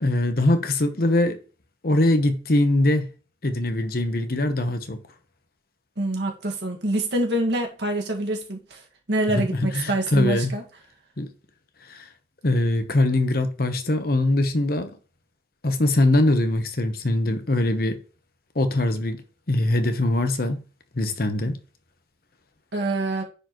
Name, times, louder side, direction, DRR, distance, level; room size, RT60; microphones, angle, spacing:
voice 1, 0.0-1.4 1.8-3.1 3.4-5.0 9.3-10.6 11.2-11.3 11.9-12.1 12.4-14.9 15.6-18.0 18.5-19.2 19.5-20.6 20.9-21.6, left 1 dB, 55° left, 1.0 m, -22 dB
voice 2, 6.0-8.8 9.1-10.6 22.7-23.2, right 1 dB, 70° right, 1.8 m, -25 dB
10.0 x 4.6 x 3.0 m
head